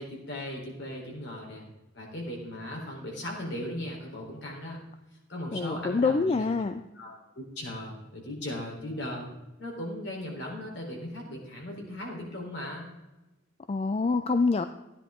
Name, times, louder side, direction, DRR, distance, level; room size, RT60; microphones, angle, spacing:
voice 1, 0.0-1.7 1.9-4.8 5.3-6.5 6.9-9.3 9.6-12.9, left 1 dB, 60° left, -1 dB, 4.0 m, -37 dB
voice 2, 5.5-6.8 13.7-14.7, left 4 dB, 30° left, 10 dB, 0.4 m, -26 dB
14.5 x 10.0 x 3.8 m, 1.0 s
head